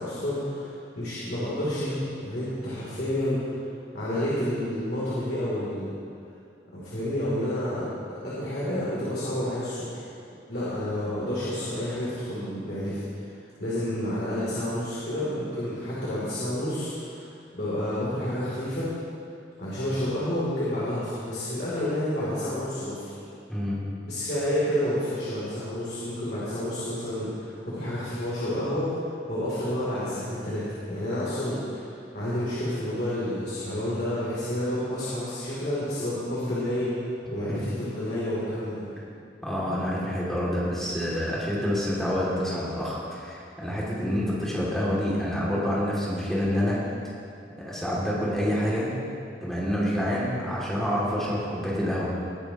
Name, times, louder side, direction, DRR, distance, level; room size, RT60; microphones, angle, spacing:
voice 1, 0.0-3.6 3.9-5.9 6.7-7.9 8.2-10.1 10.5-18.9 19.6-23.0 24.1-37.0 37.3-38.8 43.9-44.2, left 1 dB, 60° left, -9 dB, 3.0 m, -30 dB
voice 2, 23.5-23.8 37.5-37.6 39.4-46.8 47.6-48.9 49.4-52.1, equal, ahead, -8 dB, 2.4 m, -27 dB
20.5 x 10.5 x 3.0 m, 2.4 s
head